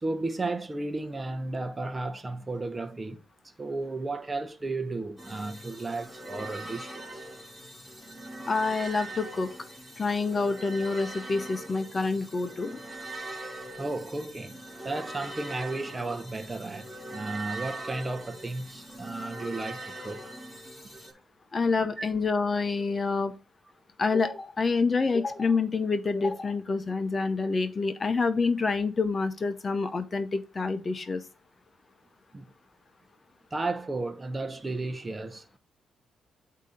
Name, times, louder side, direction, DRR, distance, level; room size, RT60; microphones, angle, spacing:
voice 1, 0.0-3.2 3.6-7.3 13.8-14.6 14.8-20.2 22.0-22.1 32.3-32.4 33.5-35.6, right 2 dB, 25° right, 0.8 m, -34 dB
sound 1, 5.2-21.1, right 2 dB, 15° left, 3.4 m, -42 dB
voice 2, 8.5-9.5 10.0-12.8 21.5-23.3 24.0-31.2, left 4 dB, 35° left, 0.8 m, -27 dB
8.2 x 2.8 x 5.1 m
cardioid pair, 75°, 0 cm